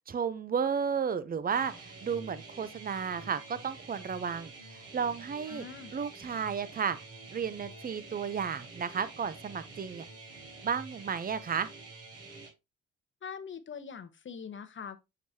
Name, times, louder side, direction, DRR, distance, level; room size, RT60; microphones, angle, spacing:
voice 1, 0.0-5.7 5.9-7.0 7.3-10.0 10.6-11.7, right 6 dB, 30° right, 0.7 m, -33 dB
sound 1, 1.5-12.5, right 3 dB, 55° right, 3.5 m, -48 dB
voice 2, 5.5-5.9 13.2-15.0, left 6 dB, 40° left, 1.0 m, -43 dB
7.1 x 4.7 x 2.8 m
cardioid pair, 90°, 30 cm